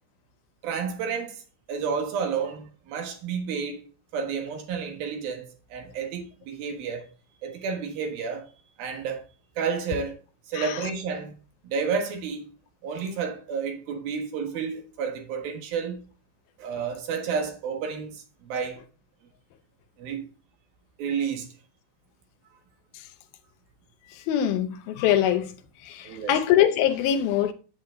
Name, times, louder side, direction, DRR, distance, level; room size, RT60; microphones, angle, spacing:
voice 1, 0.6-1.4 1.7-3.8 4.1-7.1 7.4-8.5 8.8-9.2 9.6-10.2 10.5-11.3 11.6-12.5 12.8-16.1 16.6-18.8 20.0-20.3 21.0-21.5 26.0-26.4, right 6 dB, 75° right, 3.3 m, -31 dB
voice 2, 24.3-25.5 25.9-27.5, left 10 dB, 80° left, 2.6 m, -23 dB
8.7 x 8.1 x 3.8 m
omnidirectional pair, 4.4 m